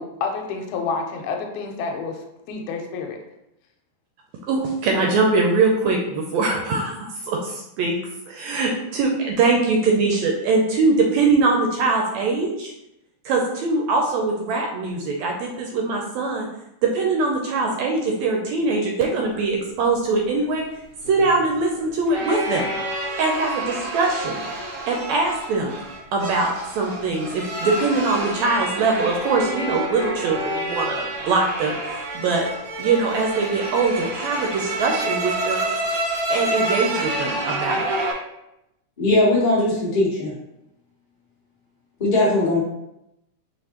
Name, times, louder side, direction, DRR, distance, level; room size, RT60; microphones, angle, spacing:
voice 1, 0.0-2.2 2.5-3.2, left 4 dB, 85° left, 3 dB, 2.1 m, -29 dB
voice 2, 4.5-6.9 7.2-8.0 8.3-12.7 13.2-16.5 16.8-20.7 21.1-22.7 23.2-24.4 24.9-25.7 26.1-26.5 26.7-32.5 32.8-35.7 36.3-37.9, right 3 dB, 80° right, 0 dB, 1.7 m, -22 dB
sound 1, 20.4-38.1, right 1 dB, 45° right, 1.2 m, -28 dB
voice 3, 39.0-40.3 42.0-42.6, left 2 dB, 50° left, -6 dB, 0.5 m, -19 dB
5.2 x 3.5 x 2.9 m, 0.85 s
omnidirectional pair, 3.6 m